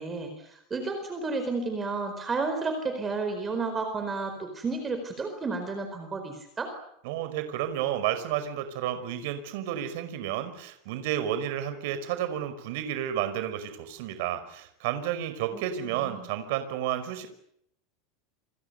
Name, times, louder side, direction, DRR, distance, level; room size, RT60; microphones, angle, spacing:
voice 1, 0.0-6.7 15.5-15.6 15.9-16.3, right 3 dB, 15° right, 6 dB, 4.5 m, -32 dB
voice 2, 7.0-17.3, right 11 dB, 60° right, 10 dB, 5.2 m, -31 dB
29.0 x 27.5 x 6.9 m, 0.72 s
supercardioid pair, 170°, 0 cm